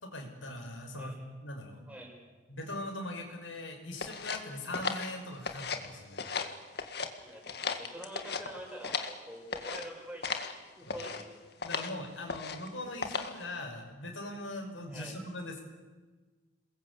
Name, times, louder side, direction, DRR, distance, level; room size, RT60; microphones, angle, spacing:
voice 1, 0.0-1.8 2.5-6.6 7.3-7.4 10.8-11.1 11.6-15.6, left 1 dB, 90° left, 3 dB, 6.0 m, -41 dB
sound 1, 4.0-5.9 6.1-7.1 7.4-9.2 9.5-9.9 10.2-10.5 10.9-11.2 11.6-11.9 12.3-12.7 13.0-13.4, left 5 dB, 55° left, 2.0 m, -36 dB
voice 2, 7.2-10.3 10.8-11.3 12.8-12.9 14.9-15.2, right 1 dB, 5° right, 0 dB, 6.1 m, -46 dB
28.5 x 21.5 x 8.5 m, 1.3 s
head